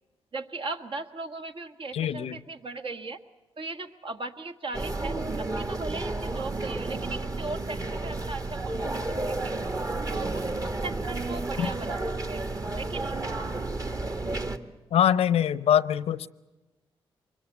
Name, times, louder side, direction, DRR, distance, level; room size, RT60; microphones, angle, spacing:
voice 1, 0.3-3.2 3.6-9.5 10.1-12.0 12.3-12.5 12.8-13.2, right 3 dB, 60° right, 6 dB, 1.7 m, -38 dB
voice 2, 1.9-2.4 11.6-11.7 14.9-16.3, left 10 dB, 85° left, 17 dB, 0.7 m, -23 dB
sound 1, 4.7-14.6, right 2 dB, 35° right, 1.6 m, -31 dB
24.0 x 21.0 x 8.0 m, 1.1 s
cardioid pair, 70°, 10 cm